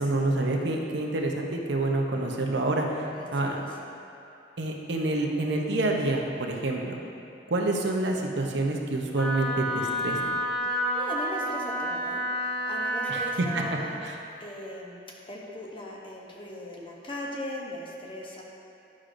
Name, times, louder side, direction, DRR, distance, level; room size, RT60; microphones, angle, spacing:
voice 1, 0.0-3.0 3.3-3.6 4.6-7.0 7.5-10.2 13.1-13.6 14.0-14.1, right 2 dB, 75° right, 1 dB, 0.7 m, -27 dB
voice 2, 3.1-3.8 10.6-14.0 14.4-18.4, left 1 dB, 30° left, -2 dB, 0.8 m, -39 dB
Wind instrument woodwind instrument, 9.1-13.3, equal, 5° left, 0.6 m, -29 dB
9.8 x 6.3 x 2.6 m, 2.8 s
head